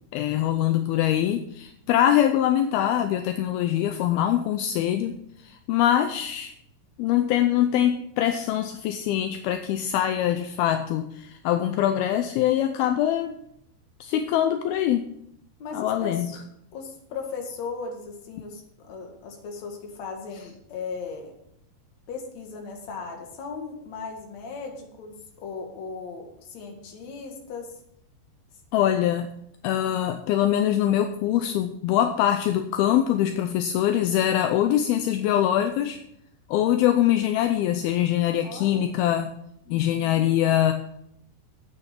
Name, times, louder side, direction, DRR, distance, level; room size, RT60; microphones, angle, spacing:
voice 1, 0.1-6.5 7.0-13.3 14.0-15.1 15.7-16.4 28.7-29.3 29.6-36.0 36.5-39.3 39.7-40.7, left 11 dB, 80° left, 7 dB, 2.3 m, -23 dB
voice 2, 15.6-16.4 16.7-21.3 22.1-27.7 38.4-38.9 39.7-40.3, left 4 dB, 50° left, 2 dB, 2.6 m, -37 dB
9.6 x 8.7 x 5.9 m, 0.76 s
omnidirectional pair, 4.9 m